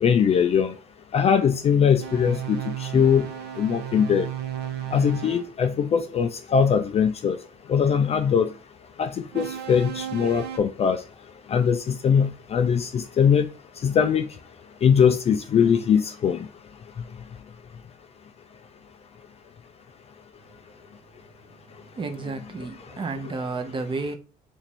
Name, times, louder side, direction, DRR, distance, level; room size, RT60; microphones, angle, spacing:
voice 1, 0.0-0.7 1.1-3.3 3.6-4.3 4.9-7.4 7.7-8.5 9.0-11.0 11.5-13.5 13.8-14.2 14.8-16.5, left 7 dB, 40° left, 0.4 m, -21 dB
sound 1, 2.0-5.5 9.3-10.6, right 10 dB, 75° right, 0.7 m, -34 dB
voice 2, 21.9-24.2, right 3 dB, 30° right, 0.6 m, -31 dB
3.1 x 2.5 x 4.4 m
cardioid pair, 110°, 17 cm